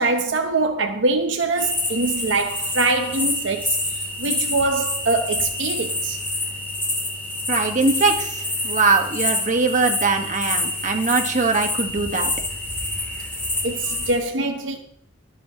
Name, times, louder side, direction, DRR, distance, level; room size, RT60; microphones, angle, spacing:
voice 1, 0.0-3.8 4.2-6.2 13.6-14.8, right 3 dB, 75° right, 1.0 m, -23 dB
sound 1, 1.6-14.2, left 1 dB, 10° left, 3.3 m, -27 dB
voice 2, 7.5-12.3, right 3 dB, 40° right, 1.6 m, -21 dB
23.0 x 8.4 x 3.1 m
head